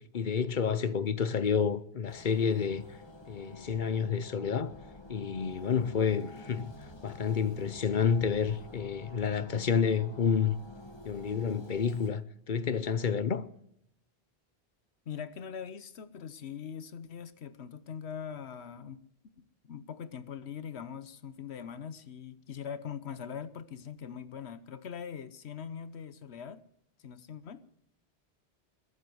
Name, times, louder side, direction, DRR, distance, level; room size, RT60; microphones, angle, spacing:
voice 1, 0.1-2.9 3.3-4.7 5.1-6.8 7.0-10.6 11.0-13.4, left 6 dB, 50° left, 0.9 m, -29 dB
sound 1, 2.1-12.1, left 2 dB, 25° left, 2.0 m, -49 dB
voice 2, 15.1-19.0 19.4-26.6 27.0-27.6, left 7 dB, 85° left, 1.2 m, -42 dB
21.5 x 8.0 x 7.8 m
omnidirectional pair, 1.1 m